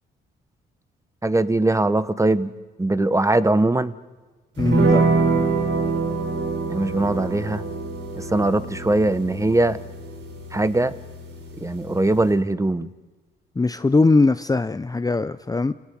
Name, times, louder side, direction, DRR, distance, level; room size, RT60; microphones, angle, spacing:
voice 1, 1.2-2.5 2.8-3.9 6.7-7.6 8.2-9.8 10.5-10.9 11.6-12.9, right 2 dB, 15° right, 14 dB, 1.3 m, -21 dB
voice 2, 4.6-5.0 13.6-15.7, left 3 dB, 20° left, 13 dB, 0.7 m, -20 dB
sound 1, 4.6-12.3, right 3 dB, 65° right, 4.5 m, -25 dB
28.0 x 17.5 x 9.3 m, 1.3 s
supercardioid pair, 65°, 21 cm